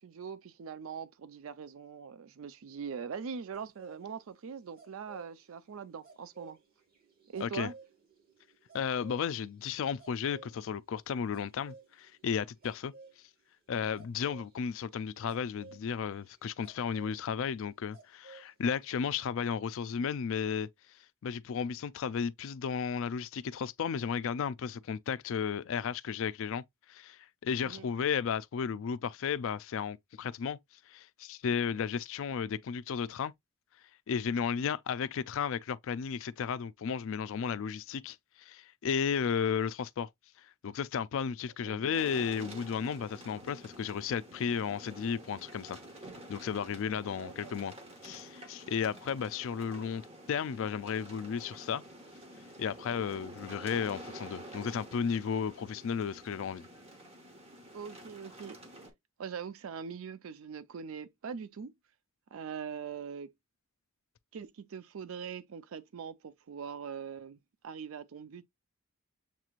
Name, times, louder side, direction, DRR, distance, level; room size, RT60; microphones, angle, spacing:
voice 1, 0.0-6.6 7.3-7.7 27.6-27.8 41.6-42.0 47.2-47.5 57.7-58.6 59.2-61.7 62.3-63.3 64.3-67.4 67.6-68.4, right 6 dB, 70° right, 0.4 m, -42 dB
sound 1, 3.5-13.2 14.0-18.5 18.7-19.0, right 4 dB, 45° right, 1.7 m, -56 dB
voice 2, 8.7-12.9 13.7-20.7 21.2-26.6 26.9-30.6 30.9-33.3 34.1-40.1 40.6-45.8 46.3-47.7 48.0-50.0 50.3-51.8 52.6-56.7, left 7 dB, 65° left, 0.4 m, -34 dB
sound 2, 41.9-58.9, right 1 dB, 30° right, 1.3 m, -49 dB
7.3 x 3.0 x 2.4 m
head